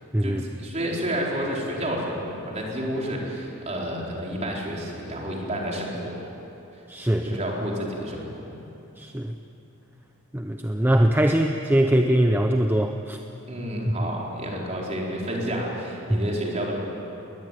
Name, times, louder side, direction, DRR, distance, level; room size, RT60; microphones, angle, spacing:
voice 1, 0.2-6.2 7.2-8.3 13.5-16.8, equal, 35° right, -2 dB, 4.4 m, -30 dB
voice 2, 6.9-7.4 9.0-9.3 10.3-13.2 13.9-14.1 16.1-16.2, right 1 dB, 10° right, 5 dB, 0.7 m, -22 dB
20.5 x 20.0 x 9.1 m, 2.9 s
head